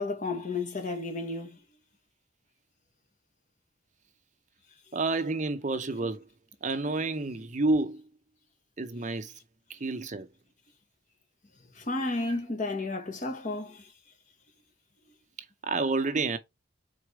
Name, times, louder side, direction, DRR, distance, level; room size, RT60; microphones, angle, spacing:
voice 1, 0.0-1.6 11.7-13.9, left 2 dB, 40° left, 1.4 m, -32 dB
voice 2, 4.9-6.2 6.6-8.0 8.8-9.3 9.7-10.3 12.3-12.4 15.6-16.4, right 3 dB, 40° right, 0.6 m, -29 dB
4.7 x 4.2 x 4.8 m
head